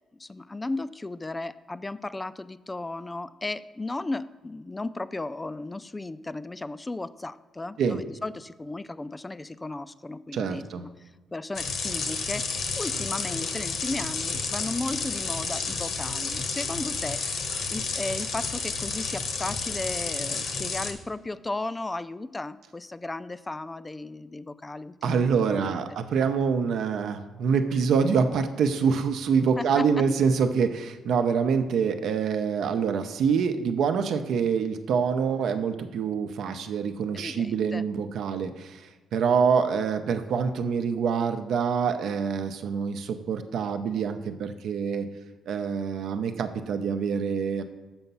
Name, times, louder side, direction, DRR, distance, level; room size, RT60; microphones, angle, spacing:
voice 1, 0.2-17.4 17.7-26.0 29.6-30.0 37.1-37.9, left 2 dB, 20° left, 14 dB, 0.3 m, -35 dB
voice 2, 10.3-10.9 25.0-45.1 45.5-47.6, right 6 dB, 70° right, 8 dB, 0.7 m, -26 dB
sound 1, 11.5-20.9, left 4 dB, 70° left, 1.0 m, -31 dB
7.1 x 5.7 x 5.4 m, 1.3 s
cardioid pair, 90°, 0 cm